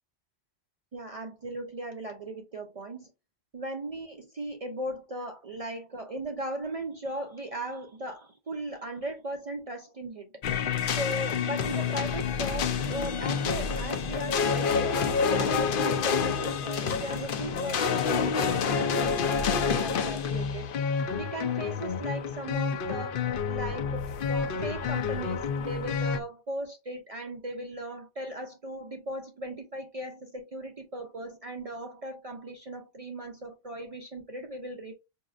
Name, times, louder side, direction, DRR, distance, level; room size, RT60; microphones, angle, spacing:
voice 1, 0.9-3.1 3.5-10.3 10.8-20.7 21.1-23.2 23.5-34.9, right 1 dB, 50° right, 0.4 m, -38 dB
sound 1, 10.4-26.2, left 6 dB, 60° left, 0.7 m, -28 dB
4.9 x 2.7 x 2.4 m
omnidirectional pair, 1.2 m